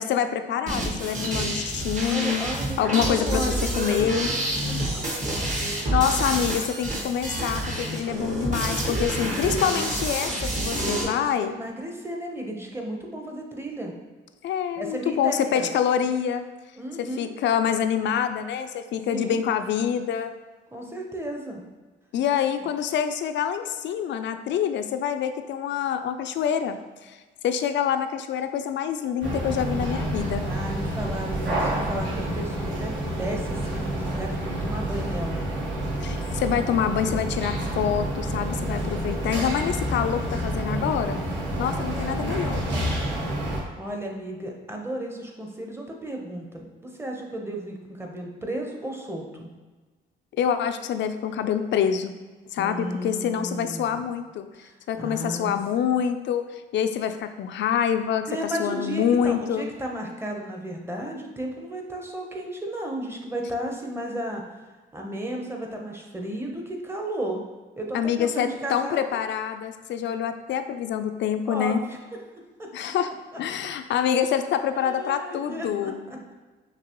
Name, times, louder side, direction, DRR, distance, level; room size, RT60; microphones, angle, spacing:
voice 1, 0.0-2.5 2.8-4.3 5.6-11.5 14.4-16.5 17.0-20.3 22.1-27.2 27.4-30.4 36.0-41.2 41.6-42.6 50.4-52.1 52.5-54.5 54.9-58.2 58.6-59.7 67.9-71.8 72.7-73.1 73.4-76.1, left 8 dB, 65° left, 9 dB, 0.4 m, -26 dB
sound 1, 0.7-11.0, right 1 dB, 40° right, 1.2 m, -28 dB
voice 2, 2.0-4.2 4.6-5.0 8.9-9.1 9.4-10.0 10.7-13.9 14.8-15.7 16.8-17.3 19.1-19.4 20.7-21.6 30.4-32.9 33.2-35.5 43.8-49.5 52.6-54.1 54.6-55.5 58.3-64.6 64.9-67.4 67.8-69.0 71.5-72.0 72.6-72.7 73.3-73.4 74.7-76.3, right 1 dB, 10° right, 1 dB, 0.9 m, -34 dB
sound 2, 29.2-43.6, right 1 dB, 65° right, 1.5 m, -28 dB
6.0 x 2.9 x 3.0 m, 1.3 s
cardioid pair, 90°, 20 cm